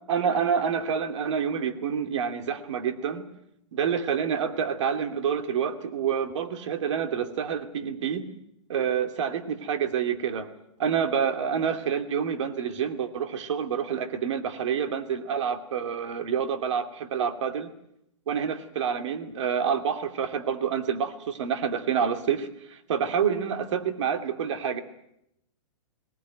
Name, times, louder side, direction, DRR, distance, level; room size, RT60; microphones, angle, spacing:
voice 1, 0.1-3.3 3.7-8.2 8.7-10.5 10.8-17.7 18.3-24.8, right 7 dB, 65° right, 7 dB, 2.6 m, -28 dB
19.5 x 19.0 x 9.2 m, 0.78 s
hypercardioid pair, 130°, 17 cm